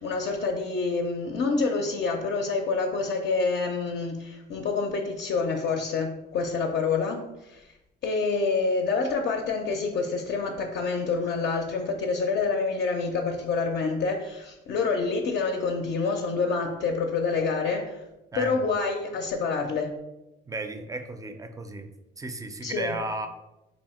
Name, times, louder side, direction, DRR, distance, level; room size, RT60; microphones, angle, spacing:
voice 1, 0.0-7.7 8.0-18.0 18.4-19.9 22.6-23.0, left 4 dB, 60° left, 2 dB, 0.5 m, -27 dB
voice 2, 20.5-21.9 22.2-23.3, right 2 dB, 15° right, 7 dB, 0.4 m, -34 dB
2.7 x 2.7 x 4.2 m, 0.95 s
cardioid pair, 90°, 20 cm